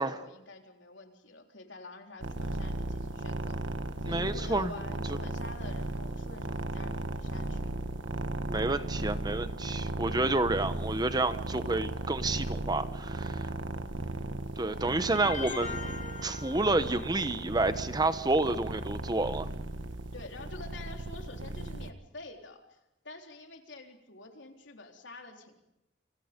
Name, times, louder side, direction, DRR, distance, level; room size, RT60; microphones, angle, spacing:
voice 1, 0.0-3.6 4.0-7.8 8.3-8.4 10.6-10.8 13.7-13.9 20.1-22.8 23.0-25.5, left 2 dB, 75° left, 3 dB, 3.8 m, -48 dB
sound 1, 2.2-21.9, right 2 dB, 85° right, 1.5 m, -36 dB
voice 2, 4.1-4.7 8.5-13.5 14.6-15.9 16.2-19.5, right 2 dB, 20° right, 11 dB, 1.0 m, -29 dB
sound 2, 15.2-17.3, left 4 dB, 45° left, 3.0 m, -40 dB
29.5 x 27.0 x 5.3 m, 0.90 s
head